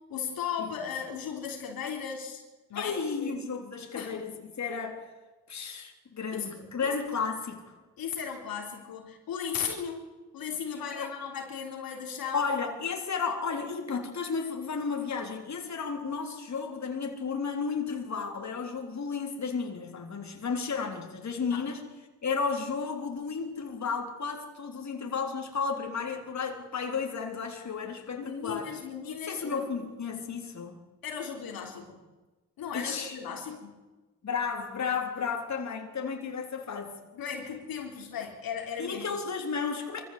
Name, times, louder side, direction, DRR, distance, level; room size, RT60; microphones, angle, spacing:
voice 1, 0.1-2.4 2.7-3.4 3.9-4.1 6.3-6.9 8.0-10.0 10.3-12.5 21.5-21.7 28.1-29.7 31.0-32.0 32.6-33.7 37.1-39.2, left 7 dB, 75° left, 3.7 m, -36 dB
voice 2, 2.7-5.1 5.5-7.6 10.9-11.1 12.3-21.8 22.2-28.7 29.3-30.8 32.7-33.2 34.2-37.0 38.8-40.1, left 5 dB, 50° left, 3.8 m, -33 dB
24.0 x 15.0 x 8.1 m
cardioid pair, 70°, 36 cm